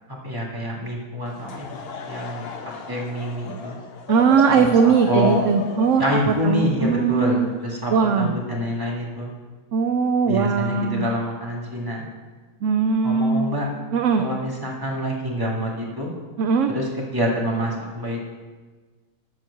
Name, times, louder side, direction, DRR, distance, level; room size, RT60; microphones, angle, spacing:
voice 1, 0.1-1.8 2.1-3.8 4.5-5.4 6.0-9.3 10.3-12.1 13.0-13.7 14.2-16.1 16.7-18.2, equal, 15° right, -3 dB, 1.9 m, -27 dB
Laughter / Crowd, 1.3-7.7, left 5 dB, 50° left, 0.9 m, -34 dB
voice 2, 4.1-7.5 7.9-8.3 9.7-11.1 12.6-13.6 13.9-14.2 16.4-16.7, right 6 dB, 65° right, 6 dB, 0.9 m, -20 dB
12.5 x 4.5 x 7.1 m, 1.4 s
omnidirectional pair, 1.5 m